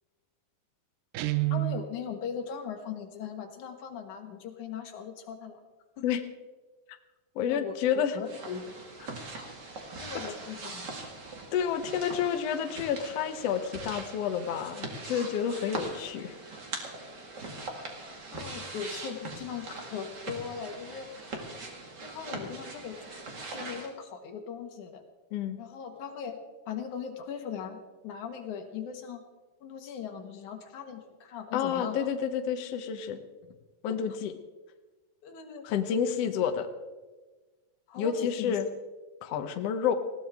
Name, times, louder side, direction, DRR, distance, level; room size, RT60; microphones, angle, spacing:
Guitar, 1.1-1.9, right 18 dB, 80° right, 2.5 m, -28 dB
voice 1, 1.5-5.6 6.0-6.1 7.5-8.8 10.0-10.9 18.3-21.1 22.0-23.1 23.5-25.0 25.6-26.4 26.7-29.2 29.6-32.0 35.2-36.0 37.9-38.6, left 7 dB, 60° left, 5 dB, 2.7 m, -39 dB
voice 2, 7.3-8.2 11.5-16.4 25.3-25.6 31.5-33.2 33.8-34.4 35.6-36.7 38.0-38.6 39.2-39.9, left 8 dB, 80° left, 7 dB, 1.4 m, -29 dB
sound 1, 8.2-23.9, right 2 dB, 35° right, 1.9 m, -41 dB
20.0 x 16.5 x 3.6 m, 1.2 s
omnidirectional pair, 4.2 m